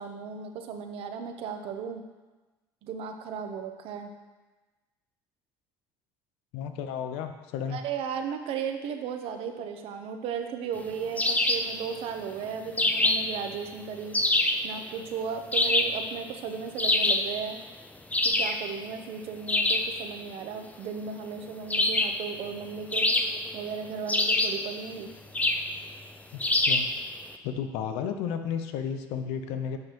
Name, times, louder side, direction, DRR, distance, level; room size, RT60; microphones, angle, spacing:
voice 1, 0.0-2.0 2.8-4.1 7.7-14.1 14.6-17.6 18.2-23.1 23.5-25.1, right 6 dB, 65° right, 6 dB, 0.7 m, -35 dB
voice 2, 6.5-7.8 26.7-26.9 27.4-29.8, left 7 dB, 80° left, 8 dB, 0.6 m, -32 dB
sound 1, 11.2-11.7 12.8-13.4 14.1-14.7 15.5-16.0 16.8-17.3 18.1-18.6 19.5-19.9 21.7-22.2 22.9-23.6 24.1-24.7 25.3-25.7 26.4-27.0, left 2 dB, 15° left, 0.5 m, -25 dB
7.6 x 5.7 x 2.9 m, 1.2 s
supercardioid pair, 75°, 10 cm